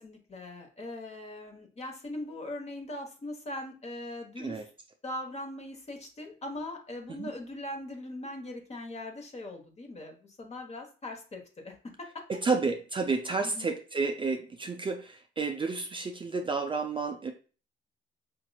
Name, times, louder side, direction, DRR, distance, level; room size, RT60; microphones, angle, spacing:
voice 1, 0.0-4.6 5.0-12.2 13.4-13.8, left 1 dB, 35° left, 4 dB, 1.0 m, -40 dB
voice 2, 4.4-4.7 7.1-7.3 12.3-17.3, right 4 dB, 25° right, 4 dB, 0.4 m, -31 dB
5.1 x 2.9 x 2.3 m, 0.37 s
cardioid pair, 90°, 20 cm